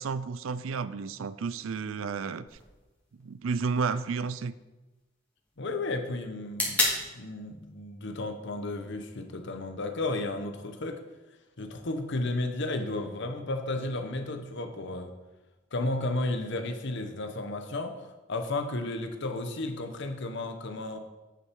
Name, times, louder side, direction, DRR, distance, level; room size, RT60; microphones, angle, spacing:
voice 1, 0.0-2.5 3.2-4.5, right 5 dB, 80° right, 16 dB, 0.4 m, -31 dB
sound 1, 2.5-10.5, left 2 dB, 10° left, 2.2 m, -37 dB
voice 2, 5.6-6.9 7.1-11.0 11.6-15.1 15.7-21.0, left 2 dB, 65° left, 7 dB, 1.0 m, -33 dB
8.4 x 6.8 x 4.6 m, 1.1 s
head